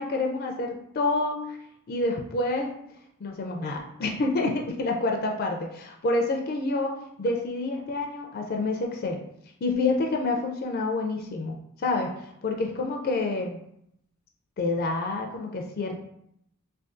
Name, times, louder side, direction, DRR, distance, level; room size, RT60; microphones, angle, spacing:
voice 1, 0.0-1.6 1.9-2.7 3.2-9.2 9.6-13.6 14.6-16.0, left 2 dB, 45° left, 2 dB, 0.4 m, -28 dB
3.5 x 2.3 x 2.5 m, 0.73 s
head